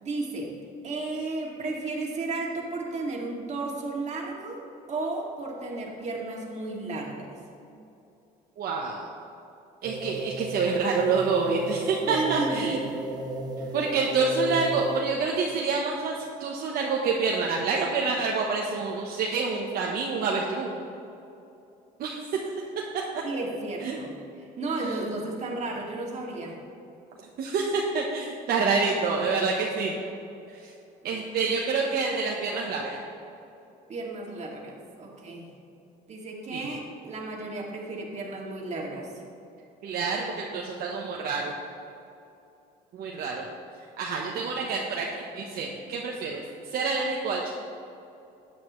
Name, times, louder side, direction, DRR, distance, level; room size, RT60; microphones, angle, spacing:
voice 1, 0.0-0.5 0.8-4.6 4.9-7.3 12.1-12.8 23.2-24.1 24.6-26.6 31.0-31.2 33.9-35.5 36.1-39.1, right 3 dB, 40° right, -2 dB, 2.2 m, -33 dB
voice 2, 8.6-9.1 9.8-12.8 13.7-20.7 22.0-22.4 23.1-23.2 23.8-24.0 24.8-25.0 27.4-29.9 30.5-30.7 31.0-33.0 36.5-36.8 39.8-41.6 42.9-43.4 44.0-47.5, right 4 dB, 65° right, -1 dB, 1.1 m, -27 dB
sound 1, 9.8-15.3, right 2 dB, 25° right, 1.1 m, -35 dB
13.0 x 9.3 x 3.2 m, 2.8 s
cardioid pair, 110°, 17 cm